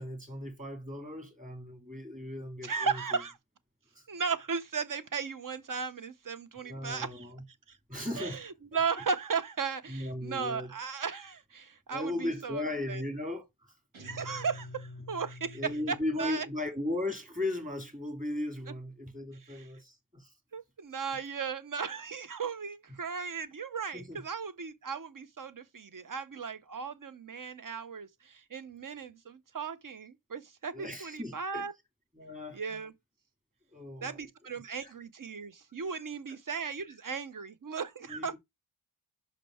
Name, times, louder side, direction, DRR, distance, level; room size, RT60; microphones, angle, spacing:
voice 1, 0.0-3.0 4.0-4.1 6.6-7.4 7.9-8.4 9.9-10.7 11.9-13.7 15.5-20.3 23.9-24.2 30.7-31.7 32.2-32.6 33.7-34.2 34.8-34.9 38.1-38.4, left 1 dB, 15° right, 2.3 m, -37 dB
voice 2, 2.6-3.4 4.1-7.3 7.7-7.8 8.2-13.0 14.0-16.5 19.4-19.7 20.5-31.7 32.5-32.9 34.0-38.4, right 5 dB, 40° right, 0.8 m, -36 dB
Guitar, 13.9-16.5, left 2 dB, 70° right, 2.3 m, -47 dB
5.5 x 5.2 x 4.3 m
wide cardioid pair, 90°, 50 cm